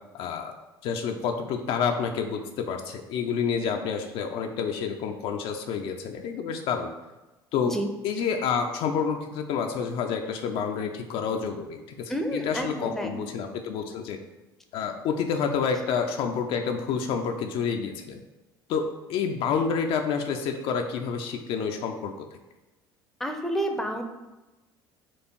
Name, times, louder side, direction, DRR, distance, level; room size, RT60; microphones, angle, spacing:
voice 1, 0.1-0.5 0.8-6.9 7.5-7.7 8.0-14.2 14.7-18.2 18.7-22.4, left 6 dB, 50° left, 4 dB, 0.4 m, -29 dB
voice 2, 12.1-13.2 23.2-24.0, equal, 5° left, 4 dB, 0.6 m, -29 dB
4.4 x 2.4 x 4.5 m, 1.1 s
figure-of-eight pair, 60°, 12 cm